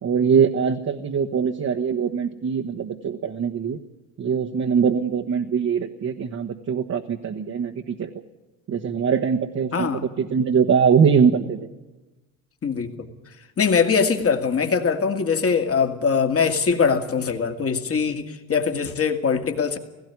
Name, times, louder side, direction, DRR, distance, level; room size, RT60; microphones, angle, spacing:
voice 1, 0.0-3.8 4.2-8.1 8.7-11.7, right 6 dB, 40° right, 2 dB, 1.4 m, -22 dB
voice 2, 9.7-10.0 12.6-13.1 13.6-19.8, left 5 dB, 35° left, 6 dB, 2.3 m, -22 dB
17.0 x 15.5 x 9.6 m, 1.1 s
hypercardioid pair, 75°, 39 cm